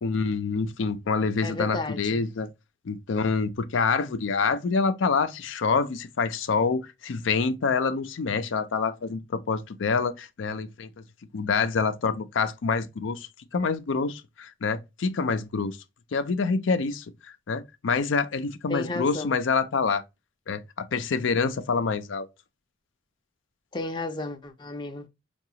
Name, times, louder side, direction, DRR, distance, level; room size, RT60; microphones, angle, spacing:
voice 1, 0.0-2.5 2.9-10.9 11.3-13.3 13.5-15.8 16.1-20.0 20.5-22.3, left 4 dB, 90° left, 0.5 m, -26 dB
voice 2, 1.4-2.2 18.7-19.3 23.7-25.1, left 2 dB, 25° left, 0.5 m, -33 dB
4.7 x 2.3 x 2.7 m
head